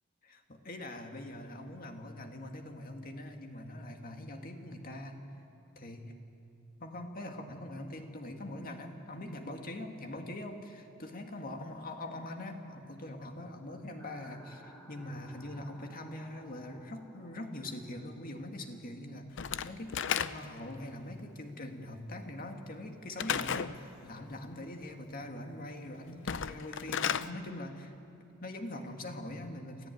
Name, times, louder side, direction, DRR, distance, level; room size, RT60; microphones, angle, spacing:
voice 1, 0.2-5.2 5.8-6.1 6.8-27.9 28.4-29.9, left 1 dB, 45° left, 4 dB, 2.0 m, -43 dB
sound 1, 14.0-19.1, right 1 dB, 10° left, 2.1 m, -56 dB
Slam / Wood, 19.4-20.7 23.2-23.8 26.1-27.3, left 8 dB, 60° left, 0.6 m, -33 dB
28.0 x 14.5 x 9.3 m, 2.7 s
head